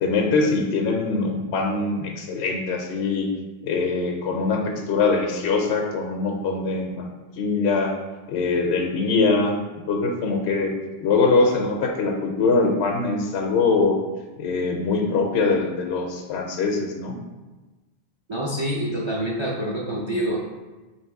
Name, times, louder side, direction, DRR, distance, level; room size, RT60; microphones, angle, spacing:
voice 1, 0.0-3.3 3.6-7.1 7.4-7.9 8.3-9.6 9.9-10.7 11.0-14.0 14.4-17.2 20.1-20.2, left 3 dB, 70° left, 2 dB, 0.9 m, -23 dB
voice 2, 18.3-20.5, right 1 dB, 40° right, -4 dB, 0.4 m, -26 dB
3.1 x 3.0 x 4.6 m, 1.2 s
omnidirectional pair, 1.2 m